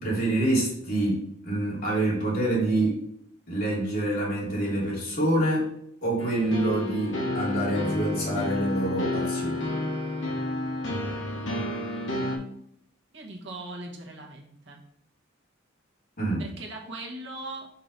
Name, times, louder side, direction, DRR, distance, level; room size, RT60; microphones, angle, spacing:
voice 1, 0.0-3.0 3.5-5.7 6.0-9.7 16.2-16.4, right 1 dB, 45° left, -5 dB, 2.7 m, -26 dB
sound 1, 6.2-12.4, left 2 dB, 65° left, 1.6 m, -30 dB
voice 2, 13.1-14.8 16.4-17.7, right 2 dB, 55° right, 0 dB, 1.2 m, -39 dB
5.8 x 3.7 x 5.3 m, 0.71 s
head